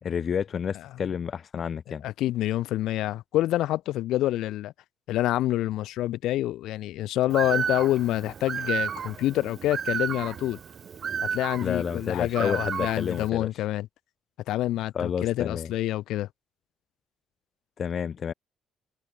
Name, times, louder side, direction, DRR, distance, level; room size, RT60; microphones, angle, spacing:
voice 1, 0.0-2.1 11.6-13.5 14.9-15.7 17.8-18.3, left 7 dB, 40° left, 2.6 m, -30 dB
voice 2, 2.0-4.7 5.1-10.6 11.3-13.9 14.5-16.3, left 14 dB, 80° left, 3.5 m, -27 dB
Bird, 7.3-13.3, right 7 dB, 40° right, 2.7 m, -32 dB
cardioid pair, 150°, 0 cm